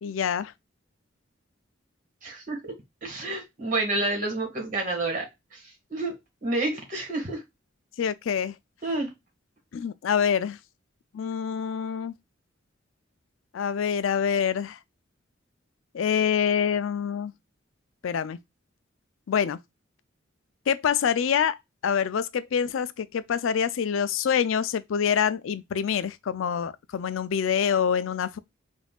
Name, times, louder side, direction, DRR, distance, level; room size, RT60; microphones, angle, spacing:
voice 1, 0.0-0.5 8.0-8.5 9.7-10.6 11.1-12.1 13.5-14.8 15.9-17.3 18.0-18.4 19.3-19.6 20.7-21.6 21.8-28.4, left 7 dB, 80° left, 0.4 m, -26 dB
voice 2, 2.2-2.7 3.0-5.3 5.5-5.6 5.9-6.1 6.4-7.4 8.8-9.1, right 2 dB, 45° right, 2.0 m, -29 dB
5.2 x 2.6 x 2.3 m
head